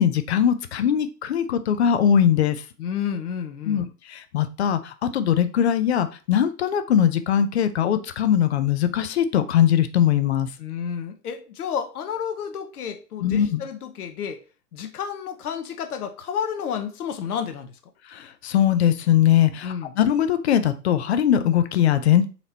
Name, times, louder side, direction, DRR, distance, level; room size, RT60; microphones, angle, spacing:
voice 1, 0.0-2.6 3.7-10.5 13.2-13.6 18.1-22.3, left 9 dB, 45° left, 0.5 m, -21 dB
voice 2, 2.8-3.9 10.6-14.4 14.7-17.8 19.6-19.9, left 7 dB, 65° left, 0.8 m, -31 dB
4.3 x 2.9 x 3.9 m
figure-of-eight pair, 105°, 49 cm